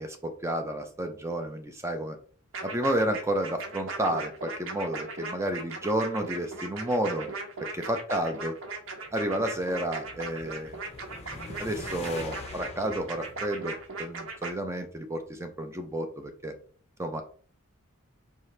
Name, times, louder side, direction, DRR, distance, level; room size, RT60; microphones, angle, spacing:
voice 1, 0.0-2.2 2.6-7.3 7.7-8.6 9.1-10.8 11.6-16.5 17.0-17.2, right 1 dB, 15° right, 6 dB, 0.5 m, -31 dB
sound 1, 2.5-14.5, right 3 dB, 70° right, 0.9 m, -38 dB
sound 2, 8.9-14.4, left 3 dB, 30° left, 0.6 m, -44 dB
4.7 x 2.7 x 3.2 m, 0.43 s
head